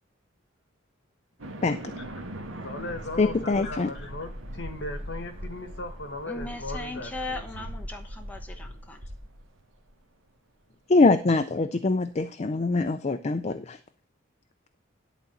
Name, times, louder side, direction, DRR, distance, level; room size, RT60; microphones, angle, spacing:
sound 1, 1.4-9.9, equal, 90° right, 1.5 m, -40 dB
voice 1, 2.6-7.7, left 2 dB, 60° left, 7 dB, 1.6 m, -38 dB
voice 2, 3.2-3.9 10.9-13.8, left 3 dB, 35° left, 9 dB, 0.4 m, -23 dB
voice 3, 6.3-9.0, left 2 dB, 10° left, 2 dB, 1.0 m, -38 dB
11.0 x 4.0 x 7.3 m, 0.42 s
head